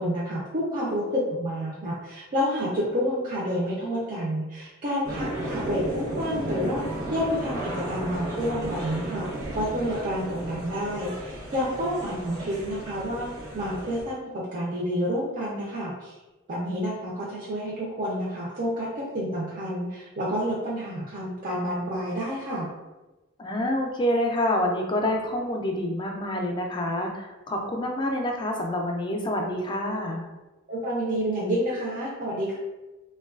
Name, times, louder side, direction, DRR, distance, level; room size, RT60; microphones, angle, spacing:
voice 1, 0.0-6.8 7.1-9.3 9.5-13.3 13.5-16.2 16.5-22.7 30.7-32.6, equal, 40° right, -6 dB, 0.5 m, -29 dB
sound 1, 5.0-14.0, right 1 dB, 70° right, 0.8 m, -34 dB
voice 2, 23.4-30.3, left 1 dB, 25° left, 2 dB, 0.3 m, -27 dB
3.1 x 2.2 x 2.3 m, 1.1 s
head